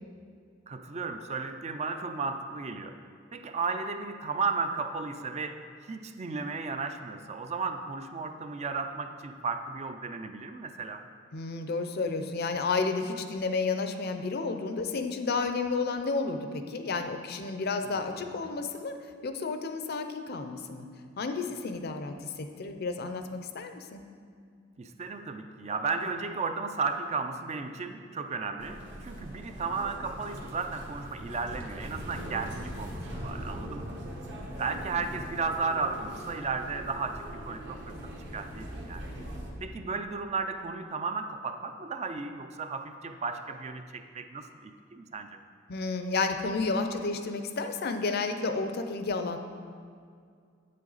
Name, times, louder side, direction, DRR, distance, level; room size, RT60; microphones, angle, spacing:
voice 1, 0.7-3.1 3.3-11.1 17.8-18.4 24.8-34.0 34.6-37.9 38.3-39.0 39.6-45.4, right 4 dB, 35° right, 7 dB, 0.4 m, -34 dB
voice 2, 11.3-18.9 19.2-20.9 21.2-24.0 45.7-49.4, left 4 dB, 50° left, 7 dB, 0.5 m, -31 dB
sound 1, 28.6-39.5, equal, 60° right, 1.4 m, -41 dB
8.3 x 7.5 x 4.0 m, 2.2 s
head